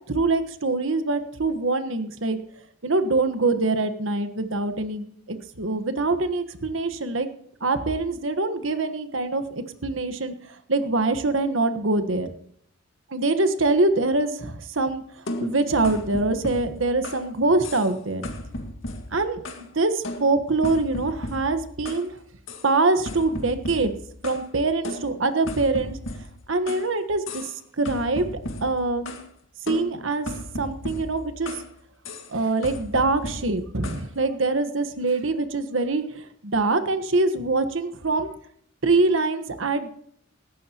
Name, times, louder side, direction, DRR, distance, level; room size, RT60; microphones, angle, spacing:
voice 1, 0.1-2.4 2.8-7.3 7.6-12.3 13.1-15.0 15.4-18.2 19.1-19.4 19.7-22.1 22.6-23.9 24.2-26.0 26.5-28.3 28.6-29.1 29.7-30.3 30.6-31.6 32.3-38.3 38.8-39.9, right 3 dB, 90° right, 10 dB, 1.4 m, -24 dB
sound 1, 15.3-17.3 17.6-18.0 18.2-19.7 20.0-22.1 22.5-22.7 23.1-24.5 24.8-26.9 27.3-27.6 27.9-29.3 29.7-31.7 32.0-32.3 32.6-34.1, left 1 dB, 80° left, 1.9 m, -35 dB
18.5 x 15.0 x 3.0 m, 0.66 s
head